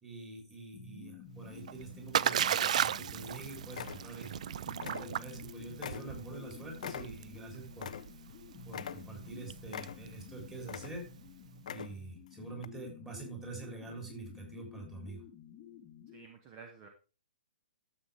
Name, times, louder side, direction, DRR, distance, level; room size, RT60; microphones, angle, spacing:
voice 1, 0.0-4.4 5.0-7.9 8.7-11.1 11.7-15.2, right 3 dB, 10° right, -1 dB, 3.9 m, -46 dB
sound 1, 0.7-16.3, left 8 dB, 20° left, 1.4 m, -52 dB
Splash splatter, 1.4-11.3, right 9 dB, 45° right, 0.4 m, -36 dB
sound 2, 3.2-3.4 3.7-4.4 4.7-5.4 5.8-8.4 8.7-9.3 9.7-10.3 10.6-11.2 11.6-12.1 12.6-12.7, left 8 dB, 50° left, 0.5 m, -44 dB
voice 2, 16.1-16.9, right 5 dB, 25° right, 4 dB, 1.5 m, -51 dB
12.5 x 7.8 x 3.6 m, 0.34 s
figure-of-eight pair, 125°, 5 cm